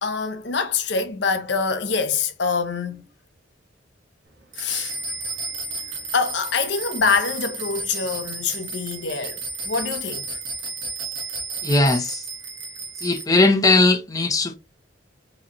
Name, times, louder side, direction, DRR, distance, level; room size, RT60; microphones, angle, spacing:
voice 1, 0.0-3.0 4.6-4.9 6.1-10.4, left 5 dB, 65° left, 0.8 m, -25 dB
sound 1, 4.5-13.2, right 3 dB, 70° right, 1.3 m, -32 dB
voice 2, 11.6-12.2 13.0-14.5, left 2 dB, 20° left, 0.5 m, -18 dB
4.9 x 3.1 x 2.9 m
head